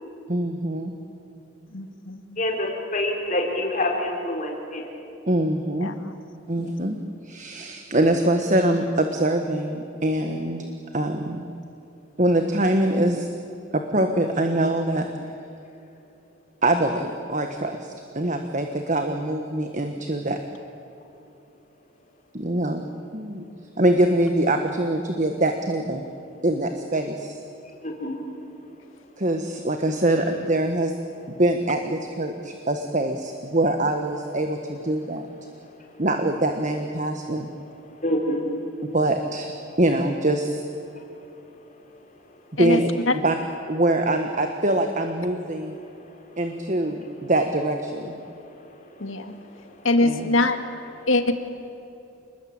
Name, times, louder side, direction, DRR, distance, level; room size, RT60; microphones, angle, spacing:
voice 1, 0.3-0.9 5.3-5.9 6.5-7.0 7.2-10.7 10.9-11.5 12.2-13.3 13.7-15.1 16.6-20.4 22.3-22.8 23.1-23.4 23.8-26.0 26.4-27.4 29.2-30.9 31.3-35.3 36.0-37.5 38.9-39.5 39.8-40.6 42.6-42.9 43.2-43.4 43.7-45.7 46.4-48.2 50.0-50.3, right 1 dB, 35° right, 6 dB, 1.4 m, -23 dB
voice 2, 1.7-2.4 5.8-6.1 6.6-6.7 42.6-42.8 43.1-43.2 49.0-49.3 49.8-50.6 51.1-51.3, left 2 dB, 80° left, 7 dB, 2.0 m, -23 dB
voice 3, 2.4-4.9 27.8-28.2 35.5-35.6 37.9-38.5 41.0-41.1 45.8-46.2 48.2-49.8, left 1 dB, 40° left, 1 dB, 4.7 m, -28 dB
28.5 x 21.0 x 9.0 m, 2.8 s
head